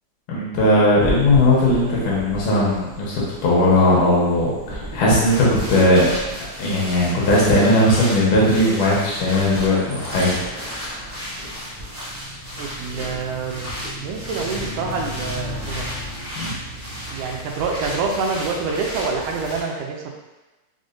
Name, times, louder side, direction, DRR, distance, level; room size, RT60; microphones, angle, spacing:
voice 1, 0.3-6.1 6.6-10.9 16.4-16.5, left 1 dB, 85° left, -6 dB, 2.5 m, -18 dB
sound 1, 1.0-19.6, equal, 45° right, 0.5 m, -33 dB
voice 2, 12.6-15.9 17.1-20.1, right 4 dB, 85° right, 1 dB, 2.0 m, -27 dB
6.1 x 2.1 x 2.6 m, 1.1 s
omnidirectional pair, 3.5 m